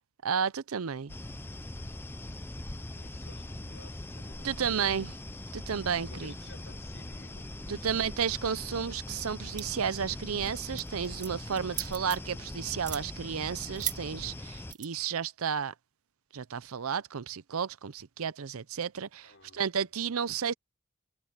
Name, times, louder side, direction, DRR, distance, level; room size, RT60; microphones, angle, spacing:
voice 1, 0.2-1.1 4.4-5.1 5.5-6.3 7.7-15.7 16.3-20.5, right 7 dB, 75° right, 0.6 m, -32 dB
sound 1, 1.1-14.7, left 1 dB, 10° left, 0.5 m, -41 dB
voice 2, 2.9-5.1 6.0-8.7 11.7-11.9 19.2-20.1, left 2 dB, 60° left, 4.4 m, -55 dB
sound 2, 9.6-9.9 10.3-10.5 10.8-12.4 12.7-13.0 13.8-14.0 14.7-14.9, right 11 dB, 35° right, 2.4 m, -36 dB
head